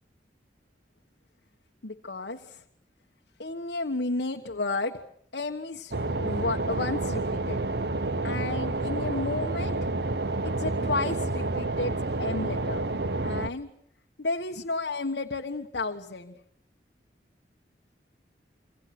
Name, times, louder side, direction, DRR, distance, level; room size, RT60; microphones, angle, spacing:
voice 1, 1.8-2.6 3.4-5.0 5.3-7.6 8.2-9.9 10.4-12.9 13.2-13.7 14.2-16.3, left 3 dB, 70° left, 3 dB, 1.4 m, -32 dB
sound 1, 5.9-13.5, right 2 dB, 65° right, 1.1 m, -29 dB
27.0 x 25.0 x 6.1 m, 0.68 s
head